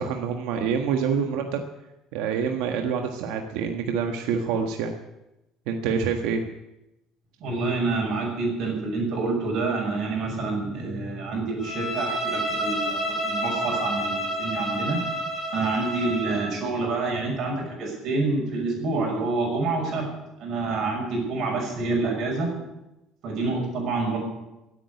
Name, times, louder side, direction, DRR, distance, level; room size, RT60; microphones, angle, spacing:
voice 1, 0.0-1.6 2.1-4.9 5.7-6.4, right 6 dB, 90° right, 4 dB, 1.4 m, -26 dB
voice 2, 7.4-15.0 15.5-20.1 20.4-22.6 23.2-24.2, right 3 dB, 45° right, 0 dB, 6.3 m, -27 dB
Bowed string instrument, 11.6-16.5, right 1 dB, 15° left, 5.4 m, -29 dB
16.0 x 9.0 x 9.6 m, 0.95 s
cardioid pair, 170°, 0 cm